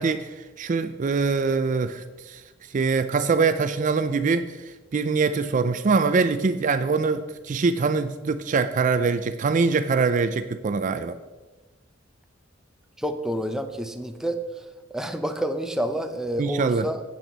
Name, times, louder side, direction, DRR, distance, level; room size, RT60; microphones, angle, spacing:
voice 1, 0.0-2.4 2.7-11.2 16.4-16.9, right 4 dB, 40° right, 11 dB, 0.4 m, -23 dB
voice 2, 13.0-14.6 14.9-17.0, right 1 dB, 5° right, 6 dB, 0.7 m, -29 dB
12.0 x 8.5 x 4.0 m, 1.3 s
head